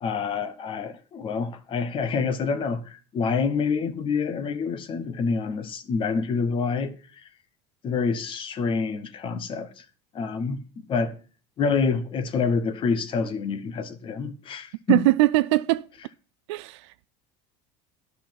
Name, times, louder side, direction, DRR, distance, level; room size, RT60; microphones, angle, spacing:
voice 1, 0.0-7.2 7.8-9.8 10.1-10.6 10.9-11.2 11.6-15.0, left 5 dB, 35° left, 1.1 m, -27 dB
voice 2, 14.9-15.9 16.5-17.0, right 18 dB, 85° right, 0.4 m, -21 dB
9.9 x 5.7 x 7.4 m
supercardioid pair, 120°, 14 cm